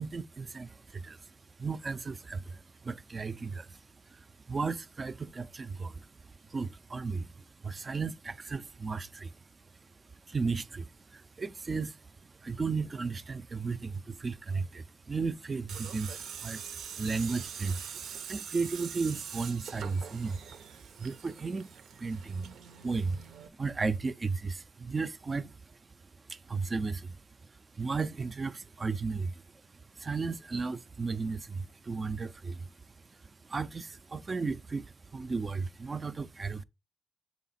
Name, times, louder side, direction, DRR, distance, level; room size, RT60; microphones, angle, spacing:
voice 1, 0.0-36.6, right 4 dB, 35° right, 0.4 m, -35 dB
Tools, 15.7-23.5, right 7 dB, 85° right, 0.7 m, -44 dB
6.4 x 4.0 x 4.0 m
cardioid pair, 95°, 0 cm